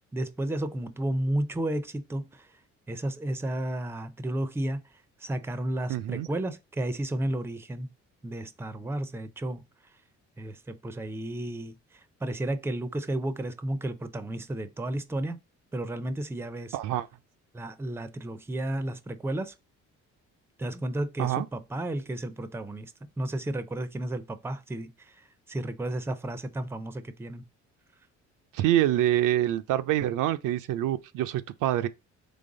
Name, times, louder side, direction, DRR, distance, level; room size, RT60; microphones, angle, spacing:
voice 1, 0.0-2.6 2.9-4.9 5.2-7.9 8.2-9.6 10.4-15.4 15.7-16.8 17.5-19.5 20.6-27.5, right 1 dB, 10° right, 0.5 m, -33 dB
voice 2, 5.9-6.3 16.7-17.1 21.2-21.5 28.5-31.9, right 13 dB, 85° right, 0.5 m, -26 dB
3.9 x 3.3 x 3.8 m
cardioid pair, 90°, 30 cm